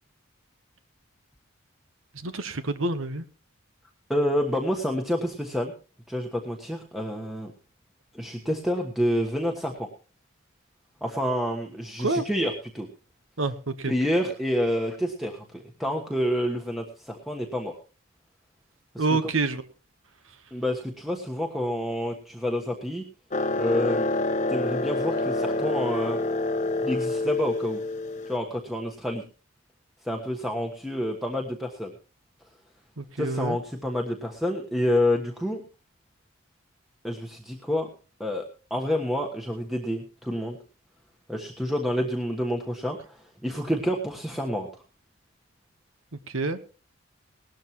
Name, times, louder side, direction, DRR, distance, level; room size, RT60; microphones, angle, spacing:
voice 1, 2.1-3.2 12.0-12.2 13.4-13.9 19.0-19.6 33.0-33.6 46.3-46.6, right 3 dB, 75° right, 11 dB, 1.2 m, -27 dB
voice 2, 4.1-5.7 6.1-7.5 8.1-9.9 11.0-12.9 13.8-17.8 18.9-19.0 20.5-23.0 23.5-24.1 24.5-26.2 26.8-27.8 28.3-29.2 30.0-31.9 33.2-35.6 37.0-37.9 38.2-38.4 38.7-40.6 41.3-44.7, equal, ahead, 1 dB, 1.3 m, -28 dB
sound 1, 23.3-28.4, left 2 dB, 35° left, 0.9 m, -27 dB
18.5 x 13.0 x 3.1 m, 0.35 s
head